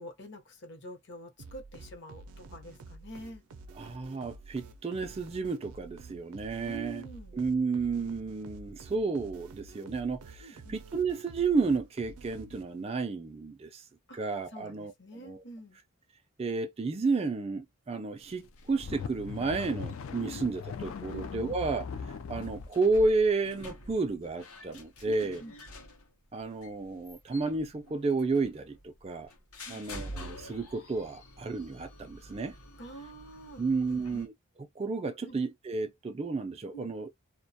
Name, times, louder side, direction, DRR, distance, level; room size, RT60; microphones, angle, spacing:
voice 1, 0.0-3.4 6.7-7.4 10.4-10.8 14.1-14.2 14.5-15.8 20.3-20.5 21.1-21.6 25.0-25.5 29.7-29.9 32.8-34.2 35.2-35.4 36.7-36.9, right 2 dB, 50° left, 0.8 m, -46 dB
sound 1, 1.4-13.0, right 3 dB, 90° right, 0.5 m, -50 dB
voice 2, 3.8-7.1 7.3-13.8 14.1-15.4 16.4-21.8 22.3-25.4 26.3-29.3 29.7-32.6 33.6-34.3 34.8-37.2, right 3 dB, 25° right, 0.3 m, -31 dB
sound 2, 18.5-22.7, left 5 dB, 65° left, 0.3 m, -40 dB
sound 3, 18.6-34.3, left 1 dB, 85° left, 0.8 m, -49 dB
2.3 x 2.1 x 2.7 m
head